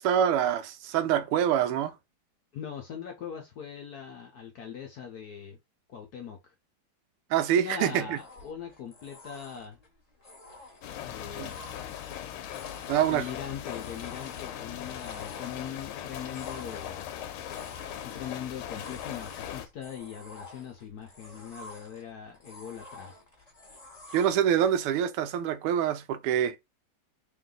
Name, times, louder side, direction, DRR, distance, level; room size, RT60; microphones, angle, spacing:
voice 1, 0.0-1.9 7.3-8.2 11.4-11.5 12.9-13.3 24.1-26.6, right 9 dB, 90° right, 1.5 m, -25 dB
voice 2, 2.5-5.6 5.9-6.5 7.6-9.8 11.0-11.6 13.1-17.1 18.0-23.2, left 8 dB, 65° left, 1.0 m, -41 dB
sound 1, 8.1-24.3, left 1 dB, 25° left, 0.9 m, -51 dB
sound 2, 10.8-19.7, left 10 dB, 80° left, 1.4 m, -39 dB
3.9 x 2.6 x 3.7 m
omnidirectional pair, 2.4 m